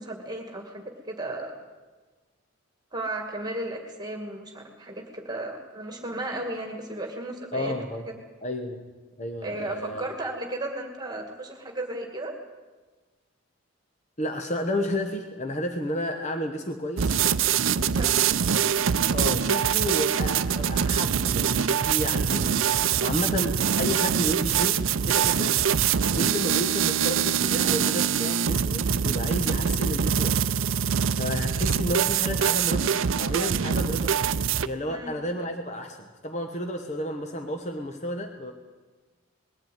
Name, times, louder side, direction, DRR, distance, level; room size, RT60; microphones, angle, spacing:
voice 1, 0.0-1.5 2.9-7.7 8.1-8.2 9.4-12.4 17.9-18.4 34.9-35.1, right 1 dB, 20° right, 3 dB, 2.2 m, -34 dB
voice 2, 7.5-8.0 8.4-8.8 9.2-10.0 14.2-17.3 17.7-18.2 19.1-25.6 26.1-30.4 30.8-34.1 34.6-38.5, equal, 35° left, 4 dB, 1.1 m, -32 dB
sound 1, 17.0-34.7, right 8 dB, 75° right, 0.6 m, -24 dB
sound 2, 23.0-27.3, left 1 dB, 65° left, 3.2 m, -45 dB
20.5 x 14.0 x 9.4 m, 1.3 s
head